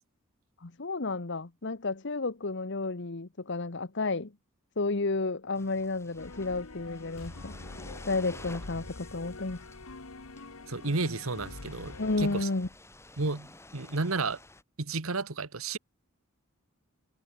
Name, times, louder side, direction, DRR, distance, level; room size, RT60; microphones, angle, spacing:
voice 1, 0.6-4.3 4.8-7.5 8.0-9.7 12.0-12.7, left 3 dB, 60° left, 1.1 m, -32 dB
sound 1, 5.5-14.6, left 2 dB, 15° left, 4.1 m, -52 dB
sound 2, 6.2-12.4, left 2 dB, 90° left, 1.6 m, -45 dB
voice 2, 10.7-12.5 13.2-14.4 14.8-15.8, right 3 dB, 80° right, 1.6 m, -32 dB
head